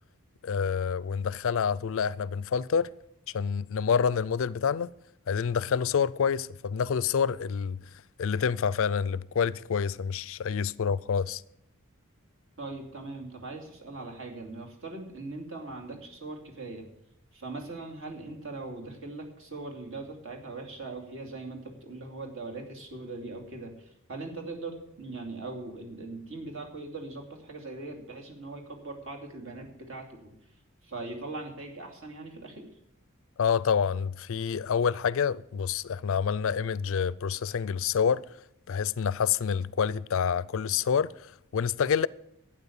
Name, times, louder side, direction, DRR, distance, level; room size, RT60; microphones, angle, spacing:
voice 1, 0.4-2.9 3.3-4.9 5.3-7.8 8.2-11.4 33.4-38.2 38.7-42.1, left 6 dB, 65° left, 0.4 m, -27 dB
voice 2, 12.6-16.8 17.3-30.3 30.8-32.6, right 3 dB, 65° right, 2.8 m, -40 dB
12.0 x 8.9 x 7.1 m
head